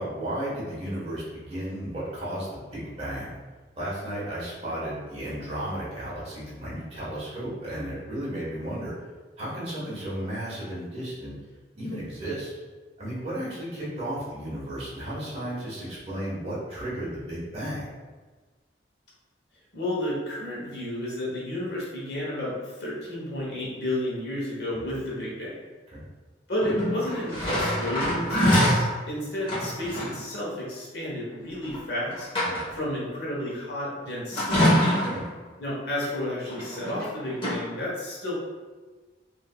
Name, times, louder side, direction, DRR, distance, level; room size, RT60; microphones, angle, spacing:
voice 1, 0.0-3.3 3.8-8.9 9.4-11.4 11.7-12.5 13.0-17.9 24.9-25.0 25.9-26.0 32.4-32.7 35.0-35.2, right 1 dB, 35° right, -8 dB, 1.2 m, -34 dB
voice 2, 19.7-25.5 26.5-32.3 32.7-34.6 35.6-38.3, left 1 dB, 70° left, -6 dB, 1.0 m, -31 dB
sound 1, 26.6-28.9 29.4-30.2 31.6-31.8 32.1-32.9 34.3-35.3 36.5-37.1 37.3-37.5, equal, 30° left, 1.1 m, -24 dB
3.6 x 2.7 x 2.3 m, 1.3 s
head